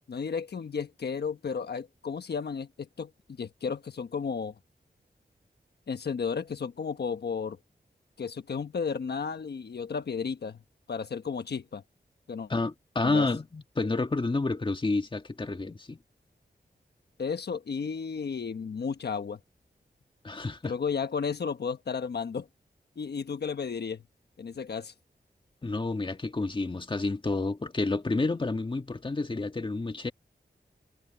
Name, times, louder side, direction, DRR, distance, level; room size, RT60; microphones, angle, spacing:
voice 1, 0.1-3.1 3.4-4.6 5.9-7.6 8.2-10.6 10.9-11.8 12.3-12.5 13.0-13.3 17.2-19.4 20.6-22.5 23.0-24.0 24.4-24.9, left 6 dB, 75° left, 1.2 m, -33 dB
voice 2, 12.5-16.0 20.2-20.7 25.6-30.1, left 3 dB, 30° left, 1.6 m, -29 dB
wide cardioid pair, 95°, 17 cm